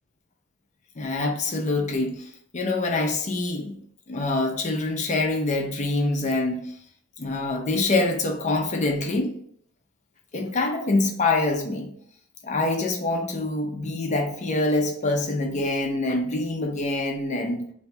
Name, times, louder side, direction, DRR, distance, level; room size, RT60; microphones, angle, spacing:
voice 1, 1.0-3.8 4.1-6.7 7.2-9.4 10.3-11.9 12.4-17.7, left 2 dB, 35° left, 2 dB, 0.5 m, -25 dB
2.6 x 2.3 x 4.1 m, 0.63 s
head